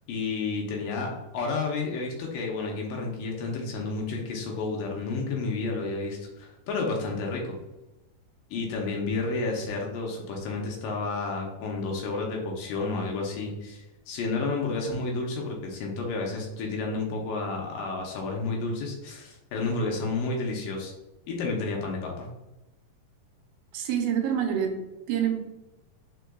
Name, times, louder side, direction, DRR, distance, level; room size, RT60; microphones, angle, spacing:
voice 1, 0.1-7.5 8.5-20.9 21.3-22.3, left 3 dB, 75° left, 0 dB, 2.3 m, -31 dB
voice 2, 23.7-24.7 25.1-25.4, right 9 dB, 90° right, 3 dB, 2.5 m, -26 dB
4.8 x 4.6 x 2.3 m, 0.99 s
omnidirectional pair, 4.2 m